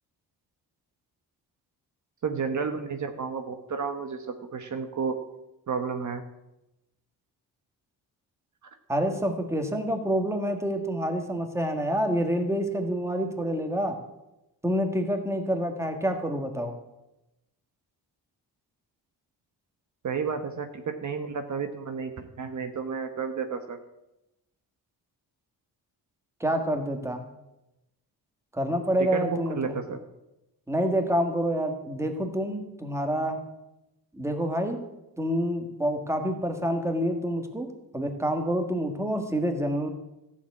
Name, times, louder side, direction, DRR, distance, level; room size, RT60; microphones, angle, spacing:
voice 1, 2.2-4.3 4.5-5.2 5.7-6.2 20.0-23.8 29.1-30.0, right 5 dB, 50° right, 7 dB, 1.2 m, -31 dB
voice 2, 8.9-14.0 14.6-16.7 26.4-27.2 28.5-29.8 30.7-33.4 34.1-34.8 35.2-37.7 37.9-39.9, equal, 5° right, 5 dB, 1.7 m, -27 dB
14.5 x 7.2 x 8.3 m, 0.92 s
wide cardioid pair, 135°, 39 cm